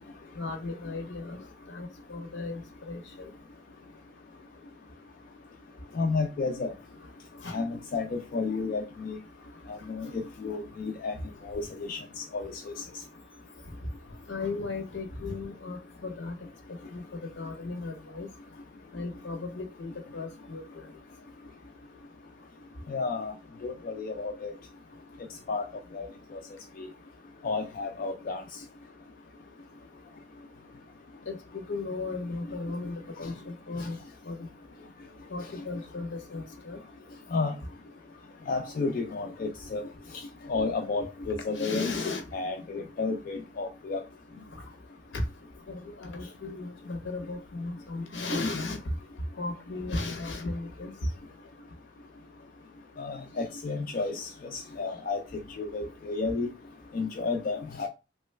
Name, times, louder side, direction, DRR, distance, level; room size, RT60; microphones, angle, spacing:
voice 1, 0.3-1.4 1.7-3.3 7.4-7.6 14.3-16.3 16.7-17.0 17.4-18.3 18.9-20.9 31.3-31.4 31.7-34.0 34.3-34.5 35.3-36.8 41.5-42.2 44.5-44.6 45.1-45.2 45.7-48.8 49.4-51.1, left 3 dB, 70° left, 0.7 m, -35 dB
voice 2, 6.0-6.7 7.5-9.2 9.7-11.1 11.4-12.5 12.8-12.9 22.9-23.3 23.6-24.5 25.5-25.6 25.9-26.1 26.3-26.4 26.8-26.9 27.4-28.4 33.2-33.3 33.8-33.9 37.3-37.5 38.5-39.8 40.5-41.9 42.3-44.0 53.0-55.2 55.6-56.5 56.9-57.9, left 4 dB, 45° left, 0.3 m, -32 dB
3.0 x 2.2 x 3.2 m
head